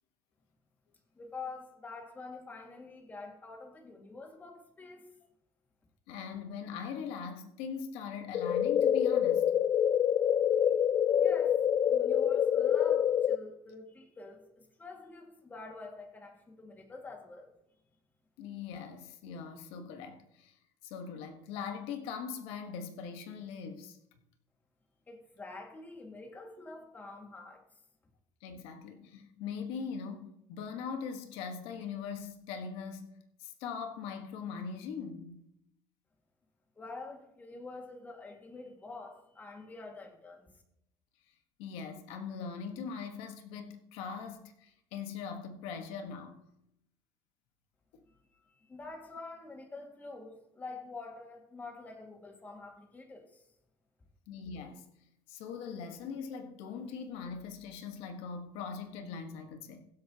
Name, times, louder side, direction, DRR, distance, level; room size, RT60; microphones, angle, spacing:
voice 1, 1.1-5.1 11.2-11.6 11.9-17.5 25.1-27.6 36.8-40.5 48.1-53.4, left 3 dB, 15° left, 1.9 m, -47 dB
voice 2, 6.1-9.5 18.4-20.6 20.8-24.0 28.4-35.4 41.6-46.4 47.9-48.0 54.3-54.9 55.3-59.9, left 6 dB, 80° left, 1.3 m, -41 dB
sound 1, 8.3-13.4, left 9 dB, 35° left, 0.3 m, -26 dB
22.0 x 7.9 x 2.9 m
cardioid pair, 145°, 10 cm